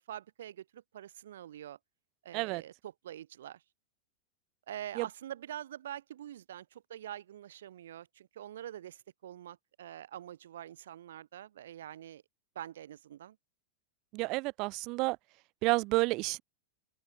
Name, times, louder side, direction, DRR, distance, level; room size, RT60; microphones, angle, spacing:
voice 1, 0.0-1.8 2.2-3.6 4.7-12.2 12.5-13.4, right 11 dB, 60° right, 7.8 m, -45 dB
voice 2, 14.1-15.2 15.6-16.4, right 24 dB, 40° right, 1.2 m, -30 dB
open air
figure-of-eight pair, 90°, 0 cm